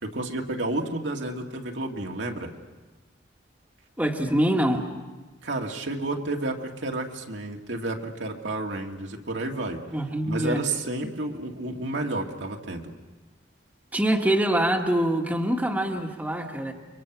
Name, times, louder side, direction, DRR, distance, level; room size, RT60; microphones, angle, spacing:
voice 1, 0.0-2.5 5.4-9.8 10.2-12.9, right 2 dB, 70° right, 1 dB, 2.1 m, -31 dB
voice 2, 4.0-4.8 9.9-10.6 13.9-16.7, right 1 dB, 10° right, 1 dB, 1.8 m, -24 dB
29.5 x 24.0 x 6.1 m, 1.2 s
head